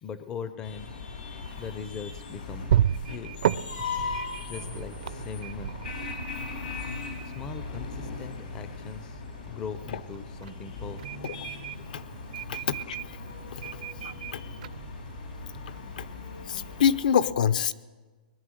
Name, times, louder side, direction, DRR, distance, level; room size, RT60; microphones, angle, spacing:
voice 1, 0.0-0.9 1.6-2.8 3.1-3.3 4.5-5.7 7.2-11.2 12.4-12.5 13.4-13.5, left 6 dB, 15° left, 12 dB, 0.4 m, -40 dB
sound 1, 0.6-17.0, left 4 dB, 80° left, 4.4 m, -39 dB
sound 2, 1.4-15.8, right 10 dB, 55° right, 0.4 m, -34 dB
voice 2, 12.5-13.0 14.0-14.4 16.0-16.1 16.5-17.7, left 8 dB, 60° left, 16 dB, 0.6 m, -26 dB
20.0 x 10.5 x 6.4 m, 1.3 s
hypercardioid pair, 175°, 5 cm